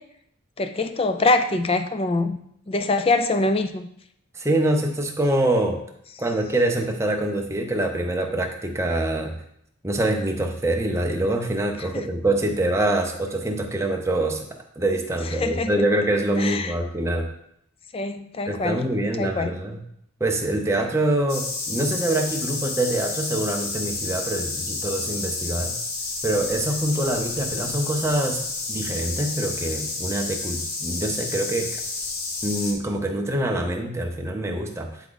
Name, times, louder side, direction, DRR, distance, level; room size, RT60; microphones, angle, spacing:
voice 1, 0.6-2.4 2.7-3.9 11.9-12.0 15.4-15.7 16.4-16.7 17.9-18.8 19.2-19.5, left 2 dB, 25° left, 9 dB, 0.4 m, -23 dB
voice 2, 4.4-5.8 6.2-9.3 9.8-14.5 14.8-17.3 18.5-19.8 20.2-25.8 26.2-28.4 28.7-31.7 32.4-34.9, right 1 dB, 15° right, 2 dB, 0.7 m, -25 dB
sound 1, 21.3-32.7, left 3 dB, 75° left, 1.2 m, -30 dB
8.8 x 3.6 x 3.9 m, 0.72 s
head